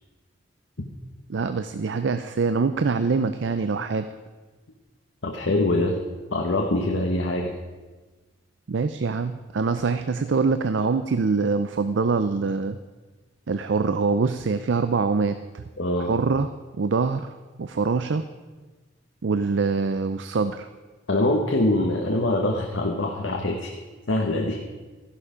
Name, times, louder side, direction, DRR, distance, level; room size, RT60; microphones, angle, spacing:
voice 1, 1.3-4.1 8.7-12.8 13.5-15.6 16.0-16.5 16.8-17.3 17.6-18.3 19.2-20.7, right 4 dB, 75° right, 10 dB, 0.5 m, -24 dB
voice 2, 5.2-6.0 6.3-7.5 15.8-16.1 21.1-23.7 24.1-24.6, left 1 dB, 85° left, 1 dB, 1.1 m, -24 dB
14.0 x 11.0 x 5.0 m, 1.3 s
head